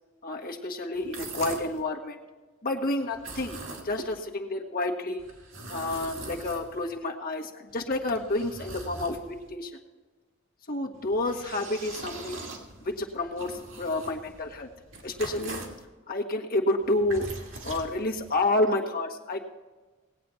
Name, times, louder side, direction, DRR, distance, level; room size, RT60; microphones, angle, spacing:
voice 1, 0.2-2.2 2.6-5.2 5.7-9.7 10.7-12.4 12.8-14.7 15.0-15.6 16.1-17.3 17.6-19.4, left 2 dB, 45° left, 2 dB, 1.5 m, -29 dB
sound 1, 0.9-1.8 3.1-4.2 5.2-7.0 7.7-9.5 10.9-15.8 16.8-18.4, right 3 dB, 70° right, 2.3 m, -42 dB
19.0 x 8.6 x 4.4 m, 1.3 s
head